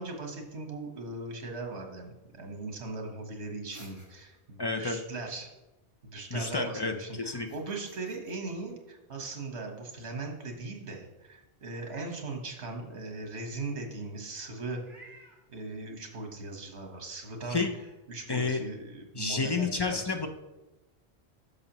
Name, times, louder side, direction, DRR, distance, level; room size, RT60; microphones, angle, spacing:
voice 1, 0.0-5.5 6.0-14.8 15.5-17.6 18.1-20.2, right 3 dB, 80° right, 3 dB, 1.6 m, -39 dB
sound 1, 3.7-4.5 7.3-8.7, left 1 dB, 15° left, 1.6 m, -57 dB
voice 2, 4.6-5.0 6.3-7.5 17.5-17.7 18.3-18.6 19.1-20.3, left 4 dB, 35° left, 5 dB, 0.4 m, -30 dB
Meow, 11.6-12.1 12.6-12.7 14.8-15.4 17.0-17.1 17.6-17.9, right 2 dB, 50° right, 1.9 m, -54 dB
10.5 x 6.6 x 3.0 m, 1.0 s
omnidirectional pair, 1.1 m